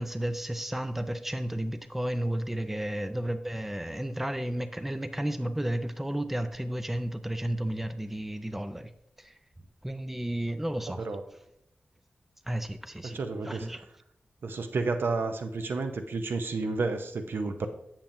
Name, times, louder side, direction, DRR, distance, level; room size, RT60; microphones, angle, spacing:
voice 1, 0.0-8.9 9.2-9.3 9.8-11.0 12.5-13.2 13.4-13.8, right 1 dB, 5° right, 0.4 m, -32 dB
voice 2, 13.0-13.7 14.4-17.7, right 3 dB, 80° right, 0.6 m, -31 dB
8.6 x 7.2 x 2.6 m
wide cardioid pair, 100°, 4 cm